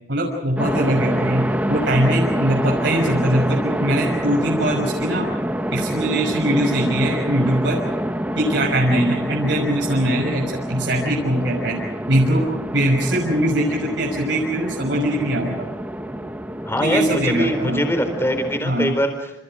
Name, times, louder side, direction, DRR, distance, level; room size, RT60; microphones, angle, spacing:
voice 1, 0.1-5.2 5.7-7.8 8.4-11.8 12.1-12.4 12.7-15.6 16.8-17.8 18.6-18.9, right 1 dB, 80° right, -1 dB, 6.1 m, -21 dB
sound 1, 0.6-18.6, equal, 10° right, 1.6 m, -26 dB
voice 2, 16.7-19.4, equal, 15° left, 6 dB, 4.3 m, -23 dB
29.5 x 29.0 x 5.1 m, 0.79 s
head